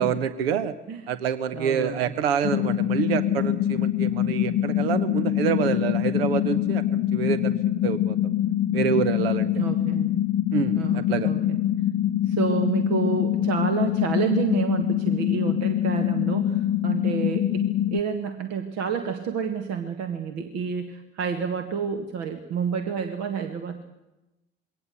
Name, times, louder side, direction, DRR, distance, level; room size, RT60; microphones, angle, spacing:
voice 1, 0.0-0.7 1.1-7.6 7.8-8.2 8.7-9.5 10.5-11.3, right 7 dB, 75° right, 14 dB, 1.1 m, -27 dB
voice 2, 1.5-2.0 9.5-10.1 10.7-11.6 12.3-24.0, right 6 dB, 60° right, 7 dB, 1.8 m, -29 dB
sound 1, 2.4-18.0, left 11 dB, 45° left, 0.8 m, -24 dB
23.0 x 18.0 x 8.1 m, 0.98 s
figure-of-eight pair, 55°, 30 cm